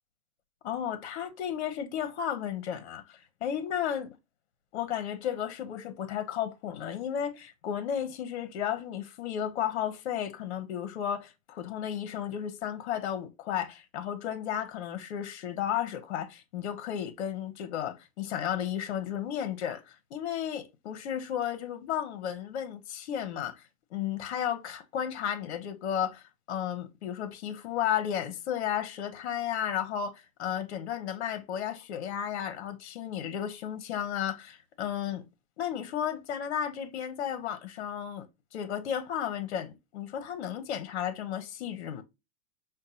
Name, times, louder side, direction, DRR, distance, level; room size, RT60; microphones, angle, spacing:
voice 1, 0.6-4.1 4.7-35.2 35.6-38.3 38.5-42.0, left 9 dB, 50° left, 0.8 m, -33 dB
5.2 x 2.2 x 2.7 m
hypercardioid pair, 145°, 43 cm